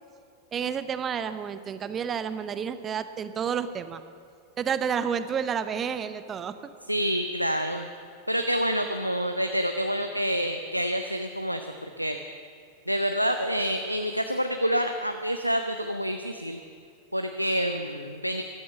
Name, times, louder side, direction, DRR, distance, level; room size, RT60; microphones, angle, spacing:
voice 1, 0.5-4.0 4.6-6.6, right 7 dB, 25° right, 12 dB, 0.8 m, -30 dB
voice 2, 6.9-7.9 8.3-12.2 12.9-16.6 17.1-18.4, equal, 90° right, 6 dB, 0.6 m, -27 dB
14.5 x 12.5 x 7.0 m, 2.3 s
figure-of-eight pair, 90°, 0 cm